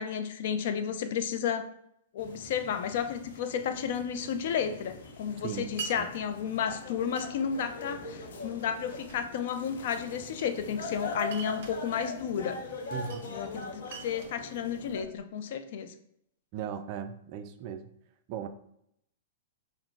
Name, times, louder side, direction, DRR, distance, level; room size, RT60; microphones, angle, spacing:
voice 1, 0.0-1.7 2.1-12.6 13.3-15.9, left 7 dB, 55° left, 8 dB, 0.4 m, -32 dB
sound 1, 2.2-15.0, left 2 dB, 75° left, 0.8 m, -42 dB
Glass, 5.8-6.0 7.2-7.7 8.5-9.3 10.1-10.8 11.2-11.8 12.9-13.3 13.6-15.2, right 7 dB, 55° right, 0.7 m, -44 dB
voice 2, 12.9-13.3 16.5-17.9 18.3-18.5, right 8 dB, 40° right, 8 dB, 0.3 m, -37 dB
3.9 x 2.1 x 4.5 m, 0.74 s
hypercardioid pair, 150°, 0 cm